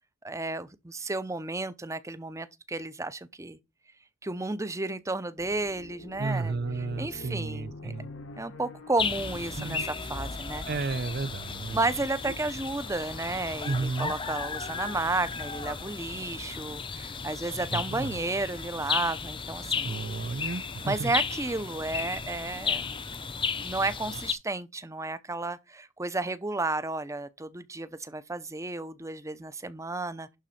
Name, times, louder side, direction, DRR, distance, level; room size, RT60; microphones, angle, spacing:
voice 1, 0.2-3.6 4.2-6.5 7.0-7.9 8.4-10.6 11.7-19.9 20.8-22.9 23.6-30.4, right 2 dB, 15° right, 0.7 m, -32 dB
sound 1, 5.4-11.4 12.4-13.7, left 2 dB, 85° left, 1.6 m, -47 dB
voice 2, 6.2-8.1 9.6-9.9 10.7-11.8 12.2-12.4 13.6-14.1 17.7-18.2 19.8-21.1, right 3 dB, 50° right, 0.6 m, -33 dB
sound 2, 9.0-24.3, left 5 dB, 25° left, 0.7 m, -34 dB
11.5 x 3.9 x 5.8 m
head